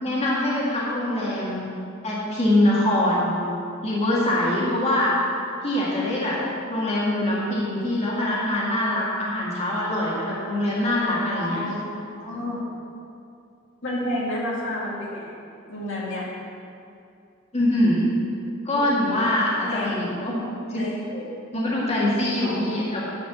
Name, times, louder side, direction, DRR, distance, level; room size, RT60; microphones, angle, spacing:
voice 1, 0.0-1.7 2.0-3.3 3.8-5.1 5.6-6.4 6.7-11.6 17.5-18.1 18.6-20.4 20.7-20.8 21.5-23.0, left 1 dB, 30° left, -6 dB, 2.0 m, -23 dB
voice 2, 11.3-11.8 12.1-12.6 13.8-15.3 15.7-16.3 19.7-20.0 20.7-21.3 22.4-22.6, left 1 dB, 65° left, -5 dB, 2.1 m, -30 dB
11.0 x 5.0 x 7.4 m, 2.5 s
head